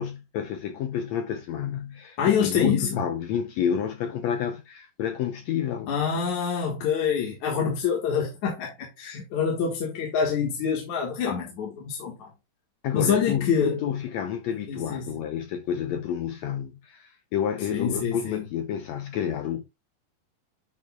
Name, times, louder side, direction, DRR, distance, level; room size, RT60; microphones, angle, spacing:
voice 1, 0.0-5.9 12.8-19.6, left 9 dB, 85° left, 1.5 m, -29 dB
voice 2, 2.2-3.0 5.9-12.3 12.9-13.8 14.7-15.1 17.7-18.4, left 7 dB, 60° left, 2.7 m, -26 dB
10.5 x 5.6 x 2.3 m
omnidirectional pair, 4.1 m